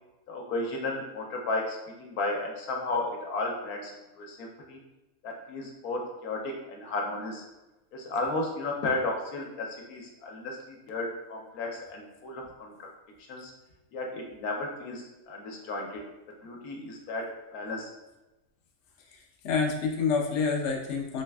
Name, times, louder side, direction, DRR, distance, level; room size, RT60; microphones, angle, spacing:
voice 1, 0.3-3.9 4.2-4.8 5.2-7.4 7.9-12.9 13.3-13.5 13.9-16.0 16.4-17.9, left 2 dB, 90° left, 0 dB, 1.2 m, -34 dB
voice 2, 19.1-21.2, left 5 dB, 65° left, 1 dB, 0.8 m, -28 dB
3.2 x 3.2 x 2.2 m, 1.0 s
omnidirectional pair, 1.5 m